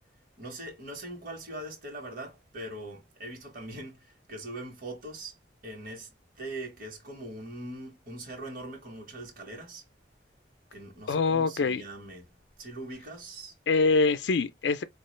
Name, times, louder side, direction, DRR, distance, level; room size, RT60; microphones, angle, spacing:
voice 1, 0.4-5.4 5.6-6.1 6.4-9.8 10.7-12.2 12.6-13.5, right 1 dB, 50° right, 1.2 m, -41 dB
voice 2, 11.1-11.8 13.7-14.8, left 4 dB, 70° left, 0.4 m, -24 dB
4.6 x 2.4 x 3.1 m
head